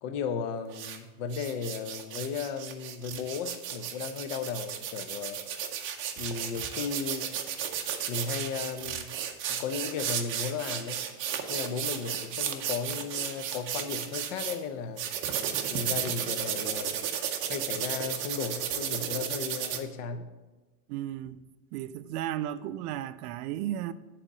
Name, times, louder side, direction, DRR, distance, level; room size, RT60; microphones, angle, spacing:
voice 1, 0.0-5.4 6.2-7.3 8.1-9.1 9.5-11.0 11.5-15.1 15.7-17.0 17.5-20.3, left 6 dB, 60° left, 0.8 m, -35 dB
sound 1, 0.7-1.0 1.3-14.6 15.0-19.8, right 9 dB, 30° right, 0.5 m, -34 dB
voice 2, 20.9-21.4 21.7-23.9, right 12 dB, 80° right, 0.6 m, -34 dB
7.8 x 4.3 x 6.7 m
supercardioid pair, 160°, 44 cm